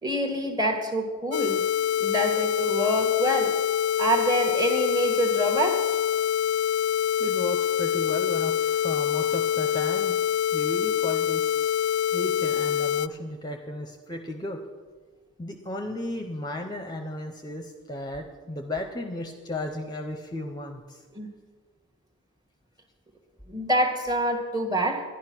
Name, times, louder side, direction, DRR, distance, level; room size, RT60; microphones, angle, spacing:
voice 1, 0.0-1.6 2.0-3.6 4.0-5.9 21.1-21.3 23.5-25.0, right 1 dB, 20° right, 3 dB, 1.4 m, -26 dB
sound 1, 1.3-13.1, left 10 dB, 90° left, 0.3 m, -25 dB
voice 2, 7.2-10.2 10.5-11.7 12.1-14.6 15.4-21.0, left 1 dB, 20° left, 4 dB, 0.7 m, -34 dB
11.0 x 11.0 x 6.0 m, 1.4 s
head